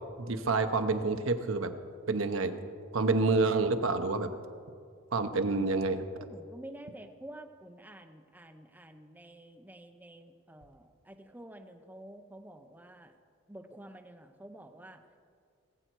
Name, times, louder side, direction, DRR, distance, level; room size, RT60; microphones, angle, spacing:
voice 1, 0.2-1.7 2.1-2.6 2.9-4.3 5.1-6.0, right 3 dB, 65° right, 8 dB, 0.8 m, -28 dB
voice 2, 6.2-13.1 13.5-15.0, right 1 dB, 10° right, 5 dB, 0.6 m, -49 dB
19.5 x 7.9 x 4.6 m, 2.2 s
head